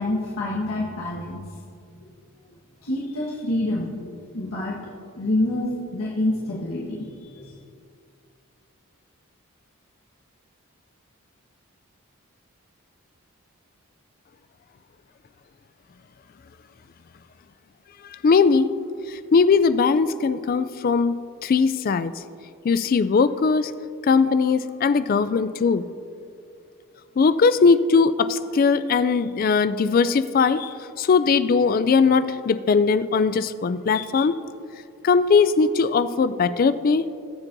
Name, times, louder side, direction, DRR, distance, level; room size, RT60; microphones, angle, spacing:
voice 1, 0.0-1.4 2.8-7.5, left 1 dB, 80° left, -6 dB, 1.5 m, -27 dB
voice 2, 18.2-18.7 19.1-22.1 22.6-23.7 24.0-25.8 27.2-34.4 35.0-37.0, left 5 dB, 40° left, 13 dB, 0.3 m, -20 dB
20.5 x 7.2 x 2.7 m, 2.4 s
head